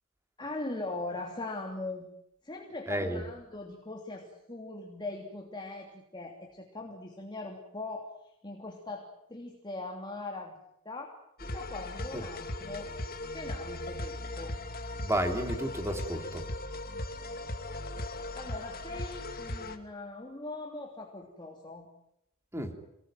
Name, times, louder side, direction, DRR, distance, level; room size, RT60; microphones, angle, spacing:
voice 1, 0.4-2.1 2.4-12.9 13.2-14.6 18.3-21.9, left 2 dB, 20° left, 1 dB, 3.0 m, -41 dB
voice 2, 2.9-3.2 12.1-12.2 15.0-16.4 22.5-22.7, right 1 dB, 15° right, 5 dB, 3.4 m, -31 dB
sound 1, 11.4-19.8, left 1 dB, 45° left, 2.5 m, -38 dB
28.0 x 19.5 x 9.3 m, 0.83 s
head